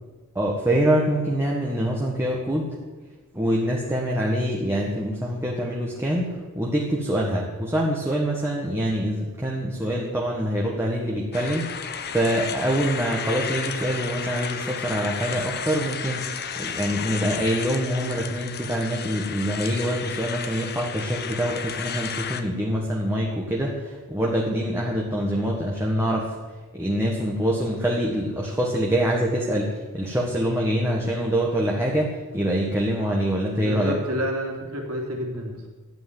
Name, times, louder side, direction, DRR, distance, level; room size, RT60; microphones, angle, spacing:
voice 1, 0.3-2.7 3.3-26.4 26.7-33.9, equal, 10° right, -2 dB, 1.6 m, -25 dB
sound 1, 11.3-22.4, left 7 dB, 45° left, 1.0 m, -33 dB
voice 2, 33.6-35.7, equal, 75° right, 1 dB, 3.2 m, -29 dB
12.5 x 8.6 x 9.6 m, 1.3 s
head